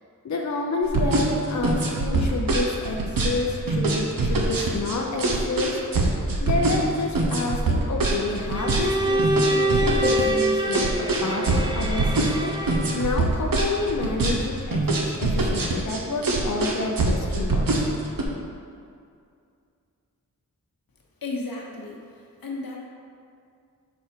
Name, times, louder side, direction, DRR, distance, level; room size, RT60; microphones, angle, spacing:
voice 1, 0.2-6.1 6.4-17.8, left 3 dB, 55° left, 0 dB, 0.6 m, -29 dB
sound 1, 0.8-18.2, right 2 dB, 80° right, 0.9 m, -24 dB
Bowed string instrument, 8.6-13.1, right 1 dB, 15° right, 0.5 m, -26 dB
sound 2, 10.0-13.3, equal, ahead, 1.3 m, -33 dB
voice 2, 21.2-22.8, left 3 dB, 90° left, -2 dB, 1.1 m, -34 dB
6.1 x 4.9 x 4.4 m, 2.4 s
wide cardioid pair, 95°, 34 cm